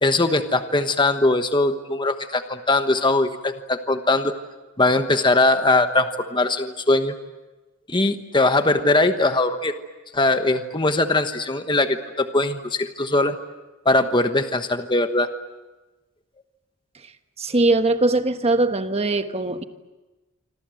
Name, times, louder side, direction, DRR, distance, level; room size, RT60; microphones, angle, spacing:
voice 1, 0.0-4.3 4.8-7.1 7.9-9.7 10.1-13.4 13.8-15.3, left 2 dB, 20° left, 1.2 m, -21 dB
voice 2, 17.4-19.6, right 2 dB, 30° right, 1.2 m, -21 dB
27.0 x 25.5 x 7.8 m
head